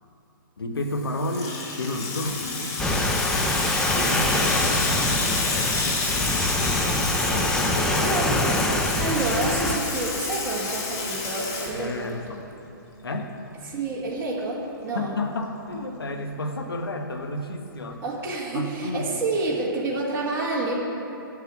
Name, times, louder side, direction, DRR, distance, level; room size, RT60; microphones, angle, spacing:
voice 1, 0.6-2.6 3.9-5.0 5.5-6.5 7.3-8.0 11.7-12.4 13.0-13.4 14.9-18.0 18.5-19.1, left 2 dB, 90° left, 5 dB, 1.1 m, -31 dB
Water tap faucet / Sink (filling or washing), 0.9-12.3, left 3 dB, 40° left, 2.5 m, -29 dB
sound 1, 2.8-9.8, left 1 dB, 5° left, 0.7 m, -25 dB
voice 2, 7.9-12.1 13.6-15.1 18.0-20.7, right 3 dB, 20° right, -5 dB, 1.7 m, -29 dB
9.8 x 6.8 x 8.1 m, 2.9 s
hypercardioid pair, 140°, 12 cm